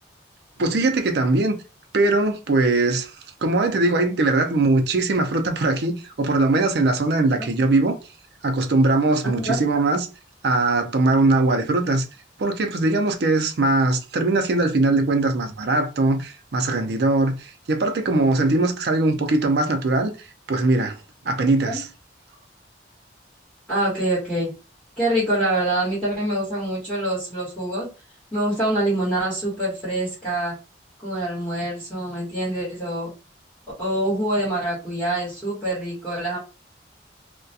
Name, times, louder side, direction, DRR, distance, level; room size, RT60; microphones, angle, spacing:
voice 1, 0.6-1.6 1.9-3.1 3.4-8.0 8.4-10.1 10.4-12.0 12.4-20.1 20.5-21.0 21.2-21.9, right 2 dB, 60° right, 0.4 m, -21 dB
voice 2, 23.7-24.5 25.0-27.9 28.3-30.6 31.0-33.1 33.8-36.4, right 1 dB, 5° left, 1.1 m, -25 dB
2.3 x 2.1 x 2.7 m
head